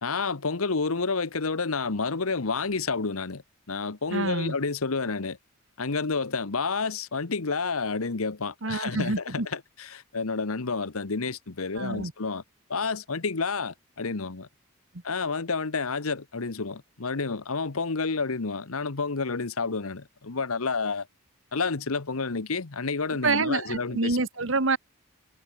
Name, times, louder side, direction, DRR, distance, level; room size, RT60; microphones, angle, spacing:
voice 1, 0.0-3.4 3.7-5.4 5.8-12.4 12.7-14.5 15.0-21.1 21.5-24.2, left 4 dB, 80° left, 1.1 m, -30 dB
voice 2, 4.1-4.5 8.6-9.5 11.7-12.1 23.2-24.8, right 3 dB, 60° right, 1.6 m, -27 dB
head